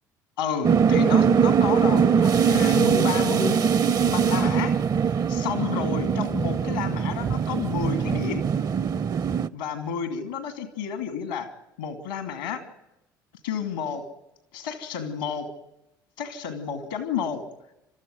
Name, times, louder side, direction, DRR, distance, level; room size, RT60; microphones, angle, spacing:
voice 1, 0.4-3.6 4.0-4.8 5.3-8.5 9.5-11.5 11.8-12.7 13.4-14.1 14.5-15.5 16.2-17.5, left 7 dB, 85° left, 6 dB, 2.5 m, -31 dB
sound 1, 0.6-9.5, right 7 dB, 40° right, 0.7 m, -22 dB
30.0 x 13.5 x 7.8 m, 0.92 s
hypercardioid pair, 60°, 11 cm